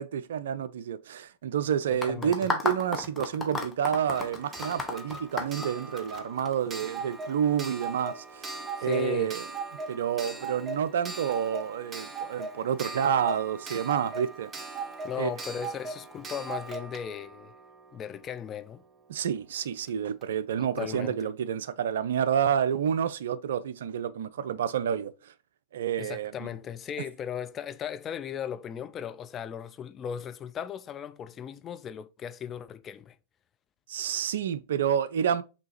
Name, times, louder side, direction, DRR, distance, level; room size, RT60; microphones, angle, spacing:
voice 1, 0.0-8.5 8.8-9.4 9.9-14.7 15.2-15.3 19.1-25.1 25.7-26.3 27.0-27.1 33.9-35.4, right 8 dB, 65° right, 0.4 m, -29 dB
voice 2, 1.9-2.3 8.8-9.3 15.0-17.5 17.9-18.8 20.6-21.3 26.0-33.2, left 8 dB, 25° left, 0.4 m, -37 dB
sound 1, 2.0-6.4, left 3 dB, 10° left, 1.0 m, -32 dB
Clock, 4.1-18.7 19.9-20.0 20.2-20.3, right 4 dB, 20° right, 0.6 m, -39 dB
6.0 x 2.8 x 2.9 m
figure-of-eight pair, 95°, 0 cm